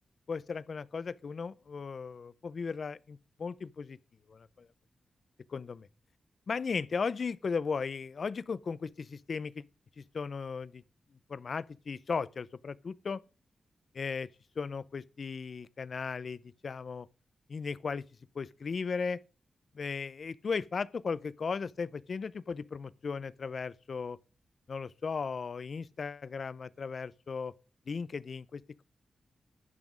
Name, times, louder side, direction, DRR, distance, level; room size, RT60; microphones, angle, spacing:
voice 1, 0.3-4.0 4.3-4.7 5.5-5.9 6.5-9.6 10.0-10.8 11.3-13.2 13.9-14.3 14.6-17.1 17.5-18.0 18.3-19.2 19.7-24.2 24.7-27.5 27.9-28.8, left 5 dB, 50° left, 0.5 m, -36 dB
11.0 x 5.8 x 4.9 m
wide cardioid pair, 115°, 0 cm